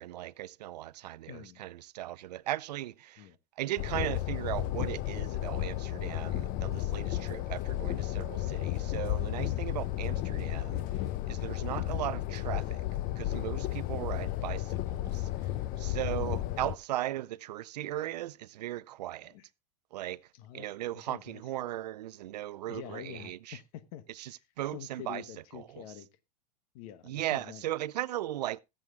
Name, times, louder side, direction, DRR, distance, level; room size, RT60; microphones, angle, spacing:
voice 1, 0.0-3.3 3.6-10.8 11.3-12.8 13.2-15.3 15.8-19.3 19.9-20.2 20.5-23.6 24.1-25.2 25.5-25.8 27.0-28.6, right 14 dB, 80° right, 0.5 m, -37 dB
voice 2, 1.3-1.7 3.2-3.4 9.5-9.8 14.1-15.0 16.1-16.4 19.3-19.4 20.3-20.7 20.9-21.4 22.7-24.4 24.7-26.1 26.7-27.6, left 11 dB, 60° left, 1.2 m, -47 dB
sound 1, 3.8-16.8, left 14 dB, 40° left, 0.6 m, -33 dB
21.0 x 7.6 x 2.3 m
hypercardioid pair, 115°, 21 cm